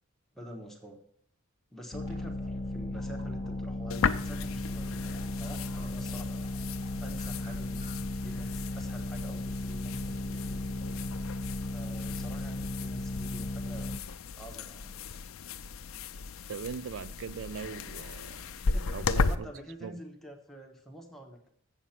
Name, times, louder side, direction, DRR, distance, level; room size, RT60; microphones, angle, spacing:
voice 1, 0.3-1.0 1.7-6.5 7.0-10.1 11.0-11.2 11.7-13.9 14.4-14.9 18.7-21.5, right 1 dB, ahead, 1.2 m, -47 dB
sound 1, 1.9-14.0, left 1 dB, 30° left, 0.5 m, -36 dB
sound 2, 1.9-7.9 8.2-8.3 10.0-11.0, right 1 dB, 35° right, 2.1 m, -53 dB
sound 3, 3.9-19.3, left 4 dB, 80° left, 0.5 m, -36 dB
voice 2, 16.5-18.4 18.9-19.5 19.8-20.0, right 6 dB, 65° right, 0.4 m, -40 dB
7.7 x 7.2 x 5.8 m
head